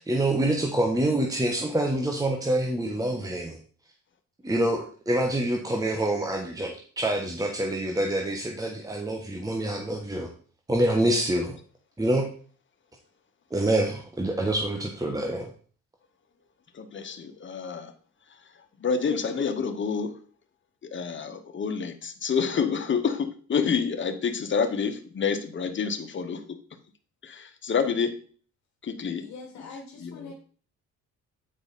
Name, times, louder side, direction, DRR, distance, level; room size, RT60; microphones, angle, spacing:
voice 1, 0.0-3.6 4.4-10.3 10.7-11.6 12.0-12.3 13.5-15.5, right 1 dB, 10° right, 1 dB, 1.2 m, -26 dB
voice 2, 16.7-17.9 18.8-20.1 20.8-26.6 27.2-28.2 28.8-29.3 30.0-30.3, left 6 dB, 40° left, 8 dB, 1.1 m, -28 dB
voice 3, 29.2-30.3, left 4 dB, 60° left, 1 dB, 1.7 m, -43 dB
8.9 x 4.7 x 4.2 m, 0.43 s
cardioid pair, 90°, 30 cm